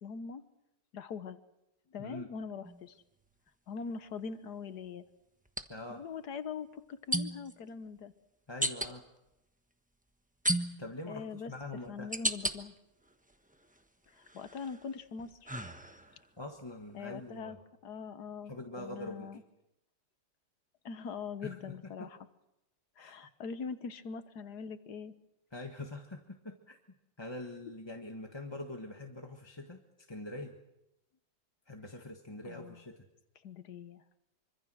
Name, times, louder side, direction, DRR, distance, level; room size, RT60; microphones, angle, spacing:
voice 1, 0.0-0.4 0.9-1.4 1.9-3.0 3.7-5.0 5.9-8.1 11.1-11.5 11.9-12.7 14.1-15.5 16.9-17.6 17.8-19.4 20.8-22.2 23.0-25.1 32.4-32.8 33.4-34.0, left 5 dB, 65° left, 11 dB, 1.7 m, -42 dB
sound 1, 2.6-2.8 5.5-5.6 7.1-7.5 8.6-8.9 10.4-11.0 11.6-12.6 13.1-13.8 14.2-16.2, right 1 dB, 5° right, 0.9 m, -34 dB
voice 2, 5.7-6.0 8.5-9.0 10.8-12.1 16.1-17.6 18.5-19.3 21.4-21.7 23.0-23.2 25.5-26.8 27.2-29.8 30.1-30.5 31.7-33.1, left 2 dB, 15° left, 2 dB, 1.4 m, -44 dB
25.5 x 25.0 x 6.3 m, 0.89 s
omnidirectional pair, 2.0 m